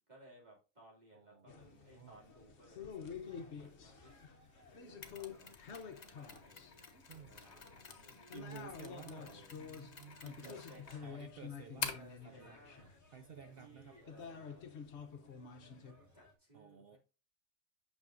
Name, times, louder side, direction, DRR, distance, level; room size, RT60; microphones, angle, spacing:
voice 1, 0.1-4.2 4.7-5.5 5.9-8.5 9.1-9.5 10.2-11.2 12.0-12.9 13.6-14.7 15.2-15.3 15.6-17.0, right 1 dB, 30° right, 2.8 m, -61 dB
voice 2, 1.1-2.2 7.1-7.4 8.3-10.6 11.0-12.6 13.1-14.0 16.5-17.0, right 7 dB, 60° right, 0.6 m, -54 dB
sound 1, 1.5-15.9, left 6 dB, 55° left, 1.1 m, -50 dB
sound 2, 1.6-16.4, left 2 dB, 15° left, 1.4 m, -66 dB
Mechanisms, 5.0-12.2, left 5 dB, 35° left, 0.9 m, -48 dB
8.9 x 6.1 x 2.6 m
omnidirectional pair, 1.5 m